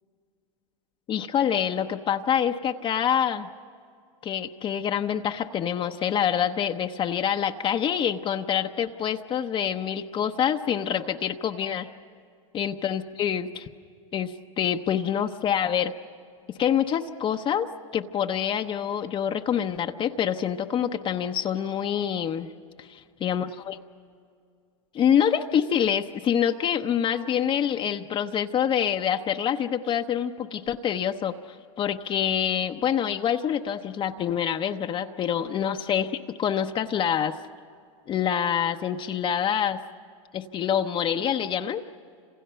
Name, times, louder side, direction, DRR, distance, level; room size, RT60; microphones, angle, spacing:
voice 1, 1.1-3.5 4.2-11.9 12.5-13.7 14.1-15.9 16.5-22.5 22.8-23.8 24.9-37.4 38.1-39.8 40.3-41.8, left 9 dB, 30° left, 6 dB, 0.9 m, -26 dB
30.0 x 27.0 x 5.7 m, 2.3 s
hypercardioid pair, 110°, 17 cm